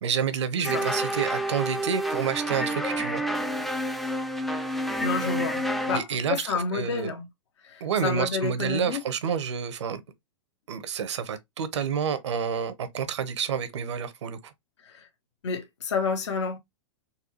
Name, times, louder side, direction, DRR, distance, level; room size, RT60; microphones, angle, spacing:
voice 1, 0.0-3.2 5.9-7.2 7.8-10.0 10.7-14.5, right 7 dB, 80° right, 0.7 m, -29 dB
sound 1, 0.6-6.0, equal, ahead, 0.3 m, -29 dB
voice 2, 5.0-7.3 7.6-9.0 14.8-15.1 15.4-16.6, left 4 dB, 75° left, 0.9 m, -30 dB
4.0 x 2.3 x 2.9 m
hypercardioid pair, 115°, 15 cm